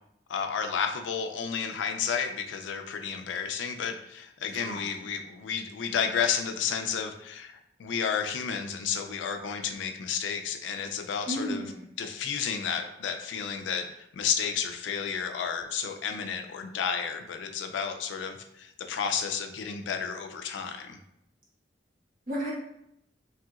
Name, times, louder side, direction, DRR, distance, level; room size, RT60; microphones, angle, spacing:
voice 1, 0.3-11.7 12.0-13.9 14.1-21.0, left 7 dB, 90° left, 6 dB, 0.3 m, -31 dB
voice 2, 4.6-5.0 11.3-11.8 22.3-22.5, right 1 dB, 50° right, -5 dB, 1.0 m, -33 dB
3.2 x 2.8 x 2.3 m, 0.80 s
head